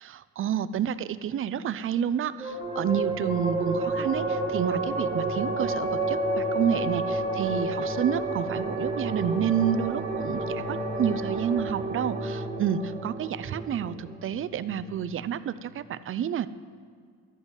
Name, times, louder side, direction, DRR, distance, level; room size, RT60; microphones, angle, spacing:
voice 1, 0.0-16.5, right 9 dB, 45° right, 15 dB, 0.5 m, -29 dB
sound 1, 2.4-15.3, right 2 dB, 20° right, 1.8 m, -30 dB
12.5 x 8.1 x 8.2 m, 2.1 s
cardioid pair, 125°, 29 cm